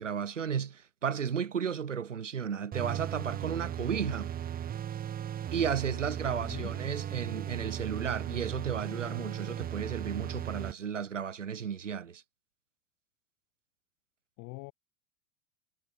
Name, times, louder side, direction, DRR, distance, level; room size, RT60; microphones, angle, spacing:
voice 1, 0.0-4.3 5.5-12.2, right 7 dB, 85° right, 2.6 m, -34 dB
sound 1, 2.7-10.7, right 10 dB, 25° right, 1.0 m, -37 dB
voice 2, 6.3-6.7 14.4-14.7, left 31 dB, 50° left, 3.5 m, -43 dB
figure-of-eight pair, 85°, 37 cm